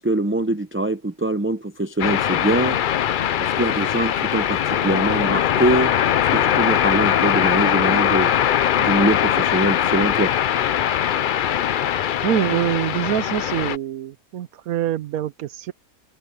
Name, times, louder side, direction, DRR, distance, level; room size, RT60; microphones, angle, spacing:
voice 1, 0.0-2.8 3.4-5.9 6.3-8.4 8.8-10.3, right 2 dB, 15° right, 0.5 m, -23 dB
sound 1, 2.0-13.8, left 10 dB, 70° left, 0.4 m, -21 dB
voice 2, 12.2-15.7, right 11 dB, 80° right, 1.1 m, -24 dB
omnidirectional pair, 1.5 m